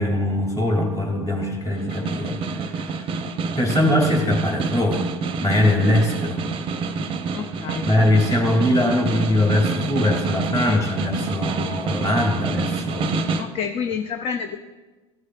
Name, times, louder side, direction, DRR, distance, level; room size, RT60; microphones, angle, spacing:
voice 1, 0.0-3.1 3.6-5.1 5.4-6.4 7.8-13.4, left 1 dB, 20° left, 1 dB, 2.2 m, -22 dB
Snare drum, 1.7-13.6, right 4 dB, 35° right, 0.6 m, -27 dB
voice 2, 7.3-7.9 13.4-14.6, left 6 dB, 35° left, 7 dB, 0.5 m, -28 dB
14.5 x 6.4 x 2.3 m, 1.3 s
hypercardioid pair, 75°, 16 cm